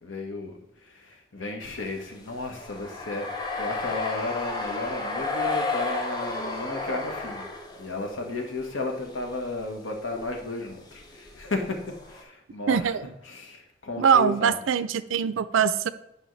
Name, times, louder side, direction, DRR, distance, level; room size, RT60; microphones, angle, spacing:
voice 1, 0.0-7.5 7.8-11.8 12.1-14.6, left 2 dB, 90° left, 2 dB, 1.2 m, -34 dB
sound 1, 1.7-8.4 8.7-9.3 9.6-9.7 10.1-10.4 11.0-12.2, left 3 dB, 20° left, 0.7 m, -33 dB
voice 2, 12.7-13.0 14.0-15.9, right 7 dB, 90° right, 14 dB, 0.4 m, -22 dB
9.6 x 5.3 x 3.2 m, 0.83 s
head